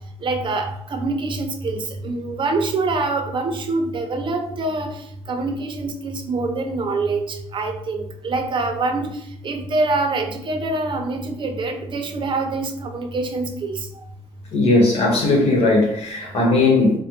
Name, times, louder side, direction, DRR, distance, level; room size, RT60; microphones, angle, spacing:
voice 1, 0.2-4.9 5.3-9.1 9.4-13.9, right 3 dB, 45° right, 4 dB, 0.7 m, -25 dB
voice 2, 14.5-17.0, left 2 dB, 65° left, -2 dB, 1.3 m, -17 dB
4.1 x 2.2 x 3.2 m, 0.71 s
cardioid pair, 95°, 11 cm